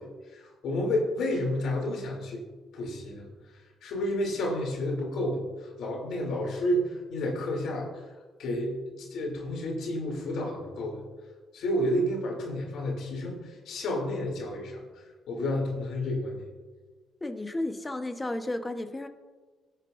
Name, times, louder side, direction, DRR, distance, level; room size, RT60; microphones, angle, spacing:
voice 1, 0.0-2.4 2.7-3.2 3.8-7.9 8.4-11.0 11.5-14.8 15.3-16.4, left 1 dB, 80° left, -1 dB, 3.1 m, -30 dB
voice 2, 17.2-19.1, left 1 dB, 15° left, 6 dB, 1.1 m, -33 dB
18.0 x 8.7 x 2.6 m, 1.4 s
cardioid pair, 90°, 0 cm